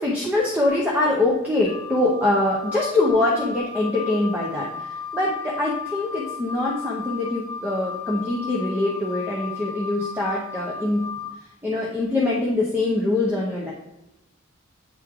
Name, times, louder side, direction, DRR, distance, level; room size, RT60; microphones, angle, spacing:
voice 1, 0.0-11.0 11.6-13.7, left 2 dB, 10° right, -3 dB, 0.7 m, -23 dB
Wind instrument woodwind instrument, 1.6-11.3, left 5 dB, 20° left, 1.2 m, -35 dB
8.8 x 3.2 x 3.6 m, 0.92 s
head